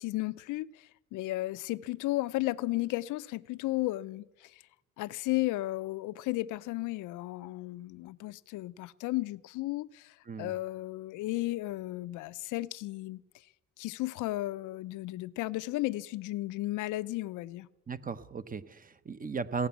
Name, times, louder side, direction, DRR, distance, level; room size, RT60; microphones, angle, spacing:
voice 1, 0.0-4.6 5.0-13.5 13.8-17.7, left 18 dB, 90° left, 0.5 m, -34 dB
voice 2, 17.9-19.7, right 5 dB, 30° right, 0.8 m, -36 dB
16.5 x 9.4 x 7.1 m
cardioid pair, 90°, 30 cm